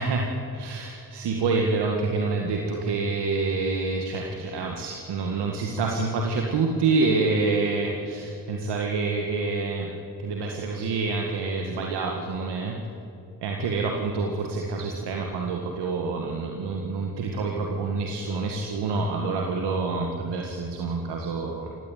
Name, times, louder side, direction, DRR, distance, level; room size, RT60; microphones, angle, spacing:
voice 1, 0.0-9.9 10.2-12.8 13.4-21.7, right 3 dB, 75° right, 1 dB, 2.0 m, -27 dB
19.5 x 16.0 x 9.2 m, 2.7 s
hypercardioid pair, 40°, 41 cm